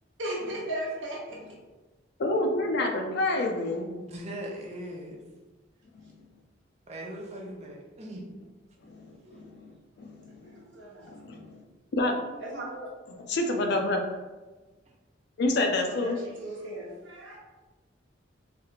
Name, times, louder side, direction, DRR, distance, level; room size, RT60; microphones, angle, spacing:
voice 1, 0.2-1.4 9.2-9.5 10.4-11.1 12.4-12.9 15.9-17.4, right 1 dB, 75° right, -3 dB, 0.9 m, -37 dB
voice 2, 2.2-3.9 8.9-9.7 10.0-10.5 11.1-11.5 11.9-12.2 13.3-14.0 15.4-16.2, left 2 dB, 60° left, 3 dB, 0.4 m, -28 dB
voice 3, 4.0-5.2 6.9-8.2, right 1 dB, 35° right, 0 dB, 0.5 m, -39 dB
3.3 x 2.4 x 2.8 m, 1.2 s
head